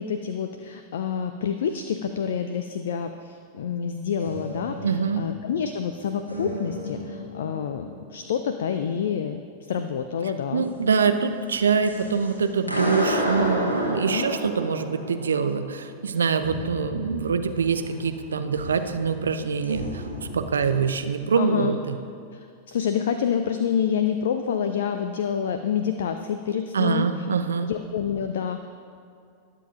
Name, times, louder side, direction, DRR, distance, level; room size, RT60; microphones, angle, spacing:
voice 1, 0.0-10.7 14.1-14.3 21.4-21.7 22.3-22.4 22.7-27.3 27.6-28.7, left 8 dB, 60° left, 8 dB, 0.4 m, -28 dB
sound 1, 4.2-6.0 6.3-8.3 11.5-21.0, equal, 85° left, 1.5 m, -32 dB
voice 2, 4.8-5.2 10.5-20.0 20.3-22.0 26.7-27.7, right 6 dB, 70° right, 9 dB, 0.5 m, -24 dB
19.5 x 7.5 x 2.6 m, 2.3 s
figure-of-eight pair, 90°, 0 cm